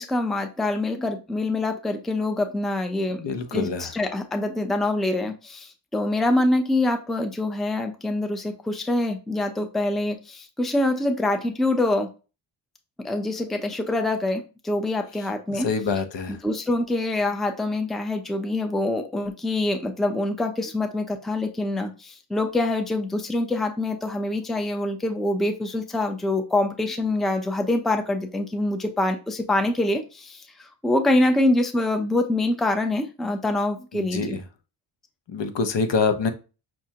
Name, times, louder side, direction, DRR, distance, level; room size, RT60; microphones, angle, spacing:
voice 1, 0.0-3.2 3.5-12.1 13.0-15.7 16.3-34.4, left 2 dB, ahead, 5 dB, 0.5 m, -25 dB
voice 2, 3.2-3.9 15.5-16.4 33.9-34.4 35.3-36.3, left 5 dB, 65° left, 8 dB, 0.8 m, -25 dB
5.9 x 2.2 x 2.8 m, 0.32 s
cardioid pair, 85°, 47 cm